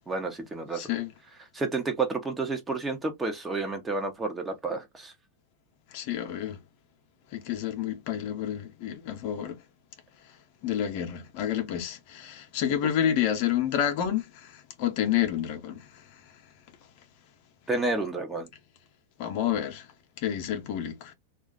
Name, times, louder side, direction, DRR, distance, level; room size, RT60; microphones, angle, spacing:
voice 1, 0.1-0.9 1.5-5.1 17.7-18.5, right 3 dB, 15° right, 0.9 m, -30 dB
voice 2, 0.7-1.1 5.9-6.6 7.3-9.6 10.6-16.0 19.2-19.9 20.2-21.1, left 10 dB, 55° left, 0.8 m, -29 dB
2.4 x 2.4 x 3.7 m
hypercardioid pair, 100°, 0 cm